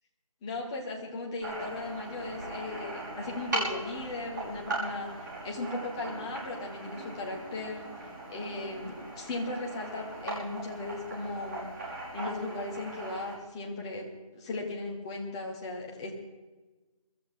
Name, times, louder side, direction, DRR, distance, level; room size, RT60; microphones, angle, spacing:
voice 1, 0.4-7.9 8.3-11.7 12.1-16.1, left 2 dB, 10° left, -1 dB, 1.1 m, -37 dB
sound 1, 1.4-13.3, right 2 dB, 35° right, 5.5 m, -39 dB
23.0 x 14.0 x 3.9 m, 1.2 s
figure-of-eight pair, 170°, 18 cm